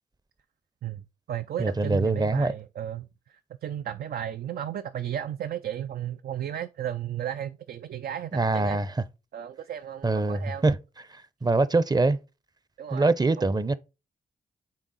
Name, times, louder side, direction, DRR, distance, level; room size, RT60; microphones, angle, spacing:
voice 1, 0.8-8.8 9.3-10.6 12.8-13.1 13.4-13.5, right 10 dB, 65° right, 0.4 m, -34 dB
voice 2, 1.6-2.5 8.3-8.9 10.0-10.8 11.1-12.2 12.9-13.7, right 3 dB, 25° right, 0.6 m, -24 dB
6.3 x 3.7 x 4.0 m
cardioid pair, 60°, 17 cm